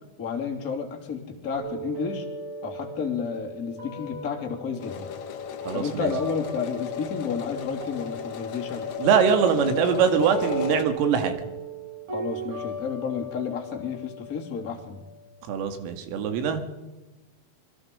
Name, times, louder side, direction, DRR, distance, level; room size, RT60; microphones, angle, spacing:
voice 1, 0.2-2.3 2.6-5.1 5.7-8.9 12.1-15.0, left 5 dB, 20° left, 1 dB, 2.6 m, -31 dB
guitar harmonics, 1.6-7.5 7.8-15.6, right 1 dB, 35° right, 9.3 m, -38 dB
sound 1, 4.8-10.8, left 7 dB, 80° left, 1.6 m, -34 dB
voice 2, 5.7-6.1 9.0-11.4 15.5-16.6, right 7 dB, 90° right, 7 dB, 4.7 m, -23 dB
26.5 x 21.5 x 5.4 m, 1.1 s
omnidirectional pair, 5.7 m